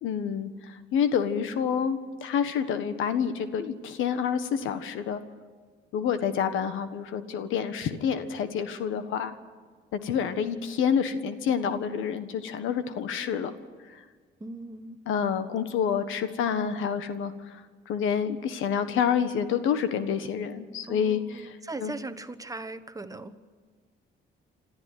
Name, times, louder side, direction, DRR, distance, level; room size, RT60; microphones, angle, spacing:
voice 1, 0.0-5.2 5.9-9.3 9.9-13.5 13.9-14.0 15.1-21.9, left 7 dB, 85° left, 11 dB, 1.4 m, -28 dB
voice 2, 14.4-15.0 20.9-23.4, right 2 dB, 15° right, 11 dB, 1.2 m, -39 dB
27.5 x 13.0 x 9.5 m, 1.5 s
cardioid pair, 90°, 20 cm